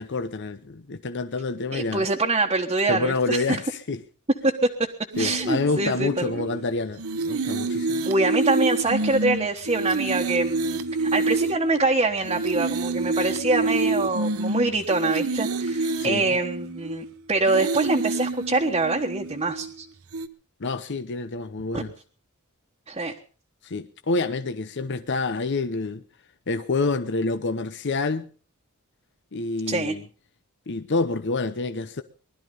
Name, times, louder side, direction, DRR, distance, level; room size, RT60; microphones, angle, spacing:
voice 1, 0.0-2.1 2.9-4.0 5.2-8.1 15.7-16.3 20.6-21.9 23.6-26.0 26.5-28.3 29.3-30.0 30.7-32.0, left 3 dB, 55° left, 0.8 m, -28 dB
voice 2, 1.7-3.6 4.4-4.7 5.2-6.4 8.0-19.8 21.7-21.8 22.9-23.1 29.7-30.0, right 2 dB, 25° right, 1.3 m, -24 dB
sound 1, 5.1-6.6 7.0-11.9 12.2-17.1 17.4-19.7 20.1-20.3, right 3 dB, 85° right, 1.0 m, -28 dB
20.5 x 12.5 x 5.3 m
head